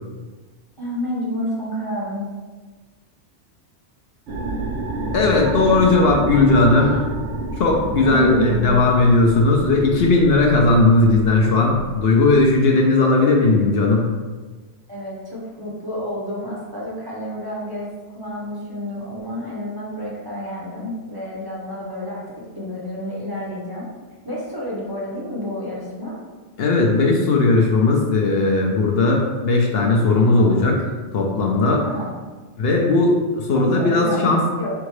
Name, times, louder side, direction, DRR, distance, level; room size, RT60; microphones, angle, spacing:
voice 1, 0.8-2.2 6.8-7.2 8.0-8.8 14.9-17.9 18.1-22.2 22.6-23.9 24.2-26.2 30.3-30.7 31.8-32.2 33.5-34.3 34.6-34.7, left 1 dB, 25° right, -6 dB, 0.7 m, -30 dB
sound 1, 4.3-12.5, right 2 dB, 80° right, 1.0 m, -29 dB
voice 2, 5.1-7.0 7.5-14.1 26.6-30.8 31.1-31.8 32.6-34.4, left 3 dB, 65° left, 0 dB, 0.8 m, -17 dB
3.7 x 3.5 x 3.2 m, 1.3 s
omnidirectional pair, 1.2 m